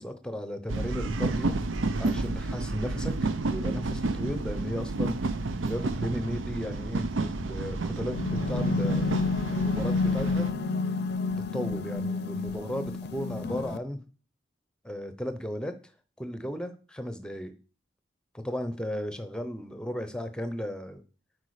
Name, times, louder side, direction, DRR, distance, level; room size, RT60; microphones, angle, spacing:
voice 1, 0.0-1.6 2.0-5.2 5.7-9.2 9.5-10.5 11.3-14.0 14.8-15.7 16.2-17.5 18.4-21.0, equal, 5° left, 9 dB, 0.7 m, -35 dB
sound 1, 0.7-10.5, right 3 dB, 90° right, 0.6 m, -31 dB
sound 2, 8.1-13.8, left 3 dB, 55° left, 0.5 m, -29 dB
8.3 x 5.0 x 4.9 m, 0.36 s
head